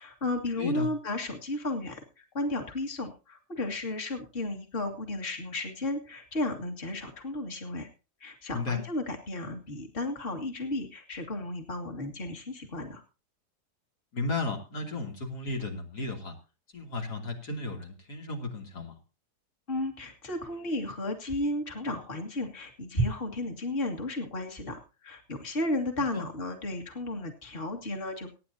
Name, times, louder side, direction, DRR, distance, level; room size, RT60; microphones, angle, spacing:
voice 1, 0.0-7.9 8.2-13.0 19.7-28.3, left 1 dB, 35° left, 4 dB, 2.3 m, -33 dB
voice 2, 0.6-0.9 8.5-8.8 14.1-16.4 16.7-19.0 26.1-26.3, left 3 dB, 85° left, 2 dB, 3.5 m, -34 dB
23.5 x 9.8 x 2.8 m, 0.33 s
omnidirectional pair, 1.7 m